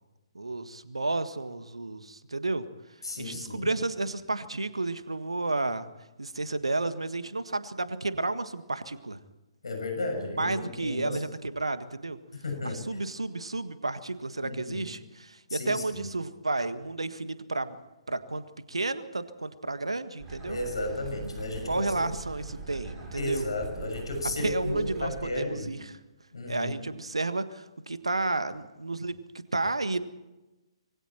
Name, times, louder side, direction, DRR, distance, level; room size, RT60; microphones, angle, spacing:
voice 1, 0.3-2.7 3.2-5.9 6.2-9.2 10.4-12.2 12.6-17.8 18.1-20.6 21.7-23.4 24.4-26.0 26.5-30.0, right 2 dB, 75° right, 11 dB, 1.6 m, -32 dB
voice 2, 3.0-3.7 9.6-11.2 12.3-13.0 14.4-14.9 15.5-16.1 20.5-22.0 23.2-25.7 26.3-26.7, left 2 dB, 65° left, 4 dB, 6.5 m, -34 dB
sound 1, 20.2-25.2, right 4 dB, 15° right, 7.0 m, -42 dB
26.0 x 23.5 x 4.4 m, 1.0 s
figure-of-eight pair, 130°, 3 cm